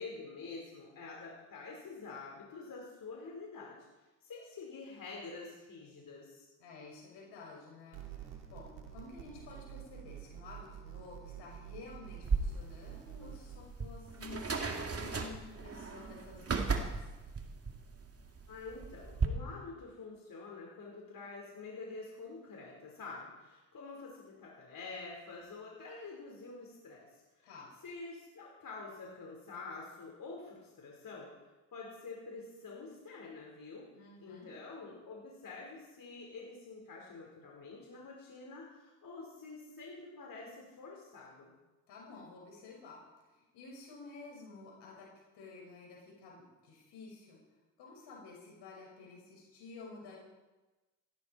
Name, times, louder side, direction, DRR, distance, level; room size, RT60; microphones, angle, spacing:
voice 1, 0.0-3.8 4.2-6.5 18.5-27.5 27.8-31.3 31.7-33.9 34.2-41.5, left 3 dB, 50° left, -2 dB, 4.7 m, -47 dB
voice 2, 6.6-17.1 27.4-27.7 33.9-34.5 41.9-43.0 43.3-45.1 45.3-47.4 47.8-50.2, left 3 dB, 75° left, -2 dB, 6.2 m, -51 dB
sound 1, 7.9-13.6, right 11 dB, 85° right, 2.5 m, -48 dB
sound 2, 12.2-19.3, right 4 dB, 35° right, 2.3 m, -36 dB
16.5 x 15.0 x 4.6 m, 1.2 s
hypercardioid pair, 55°, 41 cm